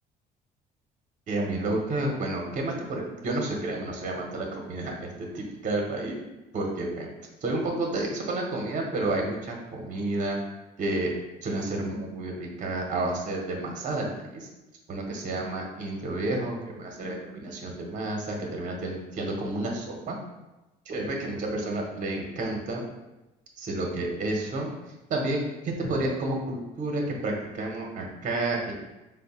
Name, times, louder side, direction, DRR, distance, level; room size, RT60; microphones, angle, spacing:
voice 1, 1.3-6.2 6.5-7.1 7.4-10.4 10.8-11.1 11.4-14.5 14.9-20.2 20.9-22.8 23.6-24.7 25.1-25.4 25.6-28.7, right 2 dB, 50° right, 1 dB, 0.9 m, -30 dB
4.2 x 2.2 x 4.2 m, 1.0 s
cardioid pair, 110°, 17 cm